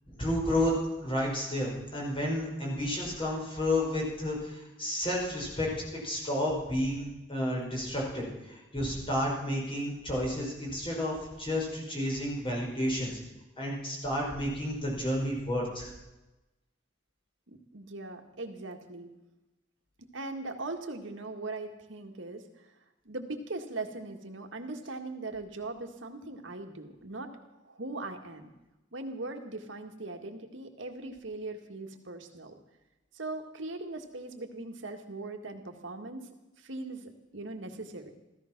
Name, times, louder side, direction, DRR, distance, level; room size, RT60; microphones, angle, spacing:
voice 1, 0.1-0.7 1.0-5.7 6.0-13.2 13.6-15.9, left 1 dB, 30° left, -2 dB, 5.2 m, -31 dB
voice 2, 17.5-19.1 20.0-22.7 23.1-28.5 28.9-32.6 33.1-36.3 36.6-38.1, right 2 dB, 80° right, 5 dB, 1.8 m, -40 dB
15.5 x 14.0 x 6.0 m, 1.0 s
head